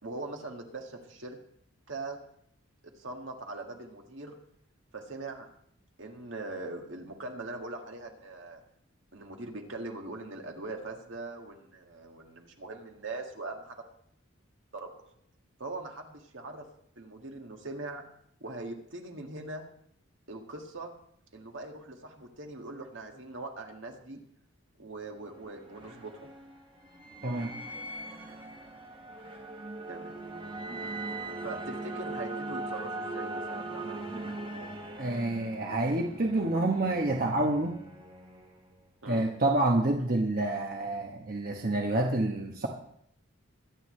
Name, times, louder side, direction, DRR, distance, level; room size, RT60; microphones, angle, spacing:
voice 1, 0.0-1.4 1.9-2.2 3.0-4.4 4.9-5.5 6.0-8.6 9.1-13.8 14.7-14.9 15.6-16.7 17.0-18.0 18.4-19.6 20.3-20.9 21.3-24.2 24.8-26.3 29.9-30.2 30.5-30.7 31.4-34.3 39.0-39.3, right 2 dB, 65° right, 2 dB, 1.9 m, -41 dB
sound 1, 25.1-38.9, right 2 dB, 25° right, 1.3 m, -40 dB
voice 2, 27.2-27.5 35.0-37.8 39.1-42.7, right 2 dB, 45° right, 1 dB, 1.1 m, -28 dB
23.0 x 9.8 x 3.2 m, 0.69 s
head